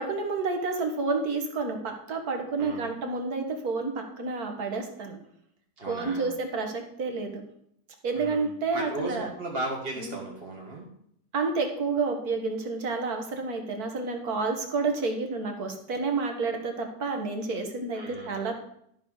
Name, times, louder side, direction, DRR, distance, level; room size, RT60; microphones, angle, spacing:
voice 1, 0.0-5.2 5.9-7.4 8.0-9.3 10.0-10.2 11.3-18.6, right 4 dB, 60° right, 4 dB, 2.1 m, -30 dB
voice 2, 2.6-2.9 5.8-6.3 8.2-10.9 17.9-18.4, right 1 dB, 35° right, -2 dB, 1.8 m, -36 dB
12.5 x 5.6 x 6.4 m, 0.70 s
omnidirectional pair, 1.9 m